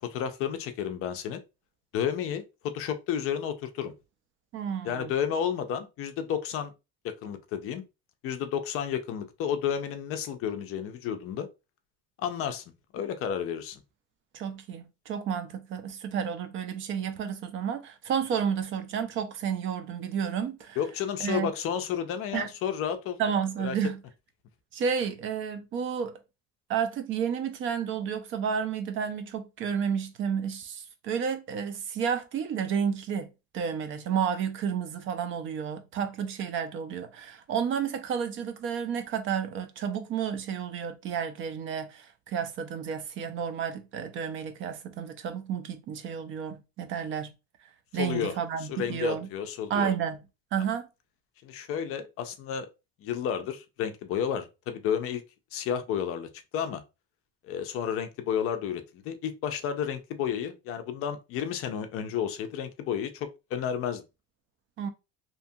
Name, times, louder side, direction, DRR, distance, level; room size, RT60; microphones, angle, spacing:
voice 1, 0.0-1.4 1.9-3.9 4.8-6.7 7.0-7.8 8.2-11.5 12.2-12.6 12.9-13.8 20.8-23.2 23.6-23.8 48.0-48.3 48.7-49.9 51.4-52.7 53.0-55.2 55.5-56.8 57.4-64.0, left 8 dB, 50° left, 0.5 m, -31 dB
voice 2, 4.5-5.1 14.3-20.8 21.2-21.5 22.3-22.5 23.2-24.0 24.7-26.2 26.7-33.3 33.5-47.3 47.9-49.3 49.7-50.2 50.5-50.9 64.8-64.9, right 7 dB, 40° right, 0.5 m, -31 dB
2.8 x 2.3 x 2.7 m
cardioid pair, 150°, 30 cm